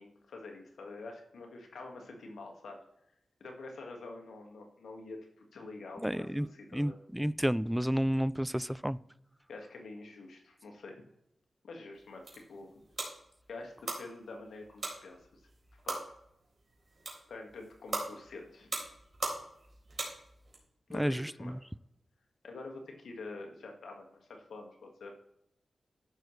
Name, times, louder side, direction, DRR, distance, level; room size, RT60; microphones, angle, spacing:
voice 1, 0.0-2.8 3.4-6.9 9.5-11.0 11.6-12.8 13.5-15.4 15.9-16.0 17.3-18.7 20.9-21.6 22.4-25.1, left 3 dB, 80° left, 2 dB, 1.7 m, -47 dB
voice 2, 6.0-6.5 6.7-9.0 20.9-21.3, equal, 5° right, 19 dB, 0.3 m, -30 dB
sound 1, 11.9-20.6, right 2 dB, 55° right, 3.7 m, -41 dB
14.0 x 6.3 x 3.2 m, 0.78 s
cardioid pair, 45°, 0 cm